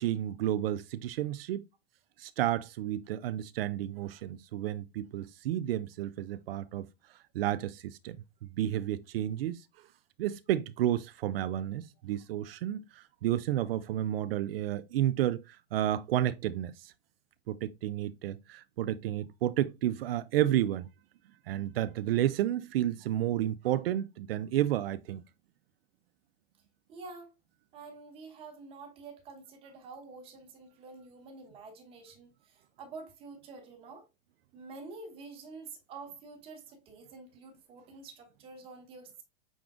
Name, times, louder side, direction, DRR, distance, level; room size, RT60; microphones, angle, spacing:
voice 1, 0.0-1.6 2.2-6.9 7.3-8.2 8.5-9.7 10.2-16.9 17.5-20.9 21.5-25.2, right 12 dB, 80° right, 0.5 m, -31 dB
voice 2, 26.9-27.3 27.7-34.1 34.5-39.2, right 4 dB, 20° right, 1.1 m, -48 dB
5.9 x 3.7 x 2.4 m
supercardioid pair, 170°, 29 cm